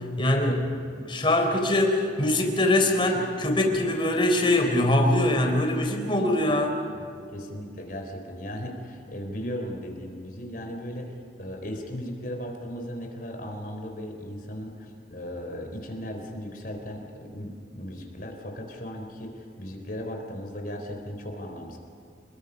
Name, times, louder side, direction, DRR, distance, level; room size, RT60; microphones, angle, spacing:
voice 1, 0.0-6.8, left 1 dB, 30° left, 3 dB, 3.9 m, -23 dB
voice 2, 7.3-11.1 11.4-21.8, equal, 50° left, 3 dB, 4.1 m, -37 dB
29.5 x 22.0 x 5.4 m, 2.6 s
head